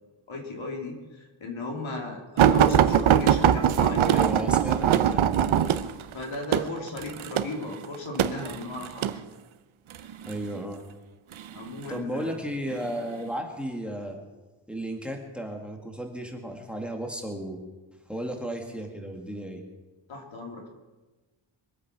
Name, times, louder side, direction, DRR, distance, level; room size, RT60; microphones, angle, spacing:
voice 1, 0.3-4.2 4.7-4.8 6.1-9.2 10.0-10.1 11.5-12.4 20.1-20.7, left 2 dB, 70° left, 1 dB, 3.3 m, -36 dB
sound 1, 2.4-9.2 9.9-10.4 11.3-12.0 12.7-12.9 13.3-13.4, right 9 dB, 70° right, 0.8 m, -22 dB
voice 2, 4.1-5.7 10.3-10.8 11.9-14.2 14.7-17.6 18.1-19.6, right 1 dB, ahead, 2 dB, 2.1 m, -34 dB
23.5 x 8.4 x 6.1 m, 1.2 s
wide cardioid pair, 115°, 49 cm